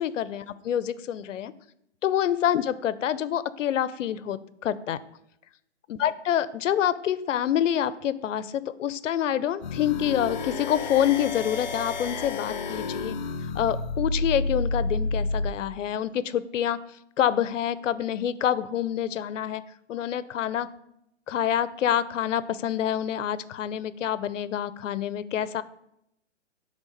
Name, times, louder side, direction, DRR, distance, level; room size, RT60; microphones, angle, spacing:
voice 1, 0.0-1.5 2.0-5.0 5.9-13.2 13.5-16.8 17.2-19.6 19.9-20.7 21.3-25.6, left 10 dB, 85° left, 16 dB, 0.6 m, -27 dB
sound 1, 9.6-15.5, left 3 dB, 40° left, 0.4 m, -30 dB
9.2 x 3.4 x 3.9 m, 0.81 s
hypercardioid pair, 170°, 37 cm